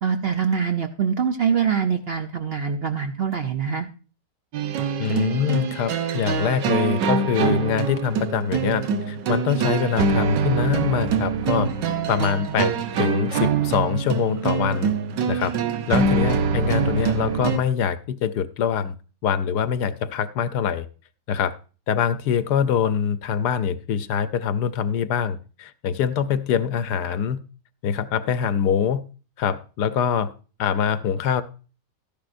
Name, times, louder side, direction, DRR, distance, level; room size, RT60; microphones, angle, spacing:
voice 1, 0.0-3.9, right 7 dB, 55° right, 6 dB, 0.6 m, -24 dB
sound 1, 4.5-17.6, right 5 dB, 90° right, 1.6 m, -24 dB
voice 2, 5.0-11.7 12.1-14.9 15.3-15.5 15.9-18.9 19.2-20.9 21.3-21.6 21.9-27.4 27.8-29.0 29.4-30.3 30.6-31.4, left 7 dB, 75° left, 13 dB, 1.2 m, -24 dB
13.0 x 10.5 x 2.5 m, 0.35 s
omnidirectional pair, 1.8 m